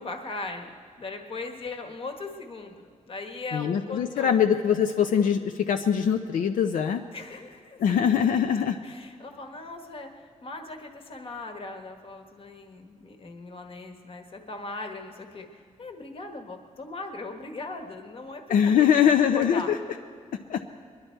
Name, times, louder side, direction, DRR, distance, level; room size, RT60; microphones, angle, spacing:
voice 1, 0.0-4.4 7.1-8.0 8.8-19.7, left 3 dB, 45° left, 4 dB, 1.3 m, -39 dB
voice 2, 3.5-7.0 7.8-8.8 18.5-19.8 20.5-20.6, left 8 dB, 80° left, 6 dB, 0.6 m, -22 dB
22.0 x 11.5 x 4.5 m, 2.1 s
wide cardioid pair, 165°, 13 cm